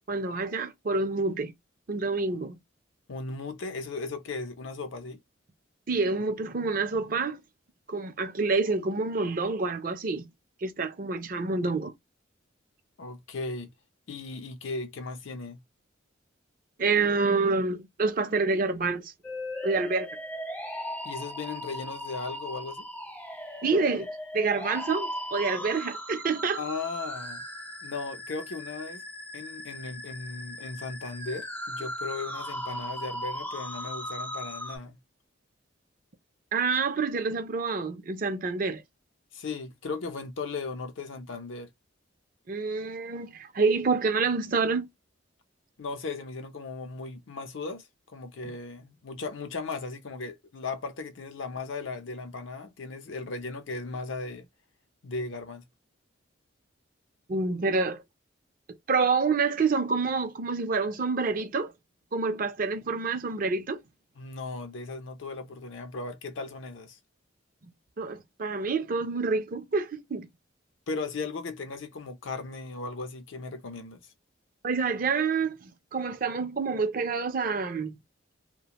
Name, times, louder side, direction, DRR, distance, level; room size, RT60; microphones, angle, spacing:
voice 1, 0.1-1.5 1.9-2.5 5.9-7.4 7.9-10.3 10.6-11.9 16.8-19.1 19.6-20.1 23.6-24.1 24.3-26.6 36.5-38.8 42.5-44.9 57.3-58.0 58.9-61.7 62.1-63.8 68.0-70.3 74.6-78.0, right 4 dB, 45° right, 0.5 m, -27 dB
voice 2, 3.1-5.2 13.0-13.7 14.1-15.6 21.0-22.9 26.6-27.4 27.8-29.0 29.3-35.0 39.3-41.7 45.8-54.5 55.0-55.6 64.2-67.0 70.9-74.1, left 3 dB, 75° left, 0.6 m, -37 dB
sound 1, 19.2-34.8, equal, 10° left, 0.4 m, -38 dB
2.4 x 2.1 x 2.9 m
head